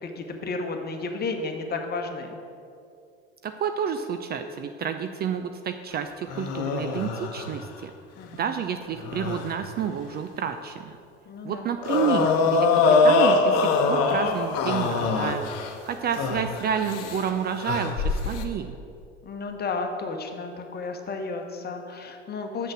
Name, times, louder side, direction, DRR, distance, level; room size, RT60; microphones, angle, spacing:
voice 1, 0.0-2.4 8.2-8.4 11.3-11.7 19.2-22.7, left 3 dB, 30° left, 5 dB, 1.1 m, -32 dB
voice 2, 3.4-7.9 8.3-11.0 11.4-15.4 15.8-18.8, right 7 dB, 30° right, 8 dB, 0.4 m, -29 dB
sound 1, 6.3-7.6 8.9-9.5 11.8-15.8 16.1-17.3 17.6-18.4, left 4 dB, 50° left, 0.9 m, -23 dB
6.6 x 6.4 x 6.1 m, 2.5 s
hypercardioid pair, 80°, 32 cm